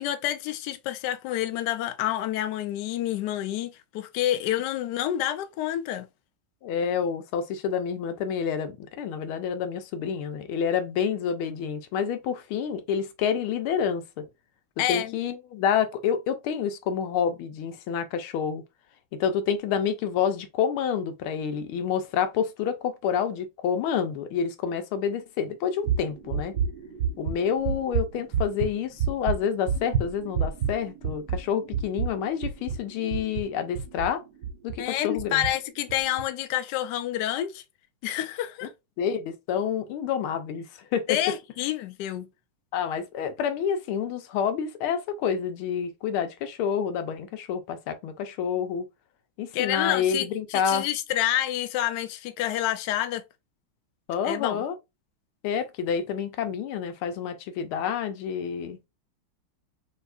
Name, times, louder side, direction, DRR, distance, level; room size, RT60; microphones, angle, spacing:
voice 1, 0.0-6.1 14.8-15.1 34.8-37.6 38.0-38.7 41.1-42.3 49.5-53.2 54.2-54.6, left 12 dB, 70° left, 1.0 m, -28 dB
voice 2, 6.6-14.3 14.9-18.6 19.2-26.5 27.2-34.2 34.6-35.4 39.0-41.2 42.7-48.8 49.4-50.8 54.1-54.7 55.4-58.8, left 7 dB, 90° left, 1.6 m, -28 dB
sound 1, 25.8-34.8 35.2-35.5 35.9-36.2, right 6 dB, 60° right, 1.1 m, -29 dB
5.8 x 2.8 x 2.4 m
omnidirectional pair, 2.3 m